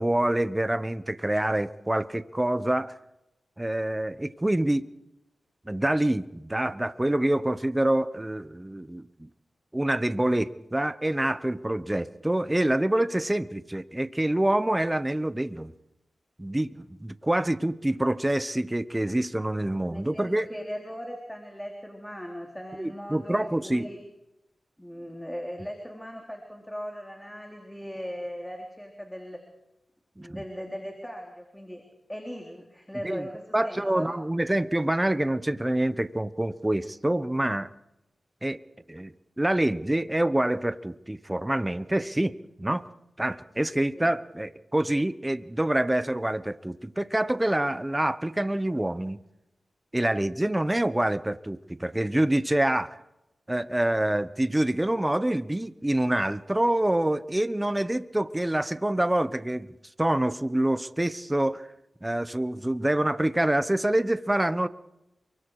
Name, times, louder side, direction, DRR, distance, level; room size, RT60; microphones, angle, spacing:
voice 1, 0.0-2.9 3.6-4.9 5.7-9.3 9.7-15.7 16.4-20.5 22.8-23.9 30.2-30.4 33.0-33.2 33.5-37.7 38.4-38.6 38.9-42.9 43.2-49.2 49.9-52.9 53.5-59.7 60.0-61.7 62.0-64.7, right 1 dB, 15° right, 13 dB, 1.1 m, -26 dB
voice 2, 19.9-24.0 24.8-29.4 30.2-34.1 44.0-44.1, equal, 5° left, 2 dB, 3.7 m, -38 dB
28.5 x 24.0 x 4.9 m, 0.90 s
cardioid pair, 60°, 0 cm